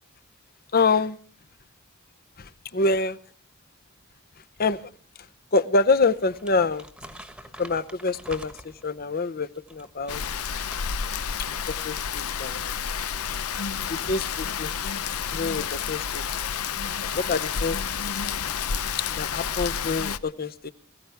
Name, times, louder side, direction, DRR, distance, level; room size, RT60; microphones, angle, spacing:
voice 1, 0.7-1.2 2.4-3.2 4.6-4.8 5.5-6.9 7.6-10.3 11.3-11.4 11.8-12.6 13.9-14.7 15.3-16.2 17.0-17.8 19.2-20.7, left 3 dB, 45° left, 15 dB, 0.8 m, -26 dB
Crumpling crinkling, 5.7-9.0 9.6-11.8 12.1-12.3, right 1 dB, 5° right, 1.3 m, -46 dB
Rain, 10.1-20.2, left 7 dB, 90° left, 0.8 m, -30 dB
22.0 x 15.5 x 3.5 m, 0.44 s
head